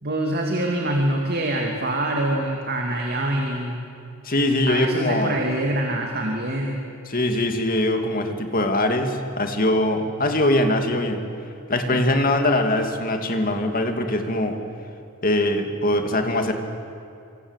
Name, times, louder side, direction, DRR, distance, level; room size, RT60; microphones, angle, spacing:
voice 1, 0.0-3.9 4.7-6.8 11.9-12.0, right 1 dB, 45° right, 1 dB, 2.6 m, -25 dB
voice 2, 4.2-5.4 7.1-11.2 11.7-14.6 15.2-16.5, left 1 dB, 40° left, 5 dB, 2.5 m, -22 dB
26.5 x 25.5 x 8.3 m, 2.6 s
head